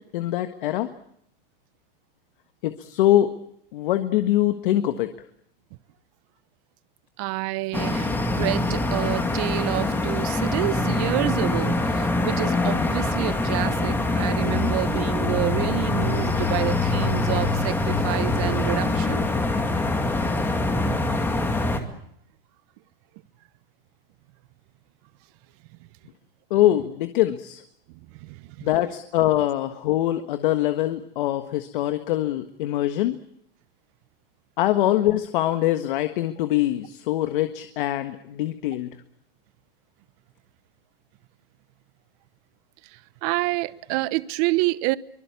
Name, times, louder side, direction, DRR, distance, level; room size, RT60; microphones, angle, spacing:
voice 1, 0.1-0.9 2.6-3.3 3.7-5.1 26.5-27.6 28.6-33.2 34.6-38.9, left 14 dB, 60° left, 1.5 m, -23 dB
voice 2, 7.2-19.3 27.9-28.7 42.8-45.0, right 20 dB, 40° right, 0.9 m, -28 dB
sound 1, 7.7-21.8, left 2 dB, 5° left, 2.1 m, -24 dB
24.5 x 21.5 x 8.3 m
supercardioid pair, 155°, 29 cm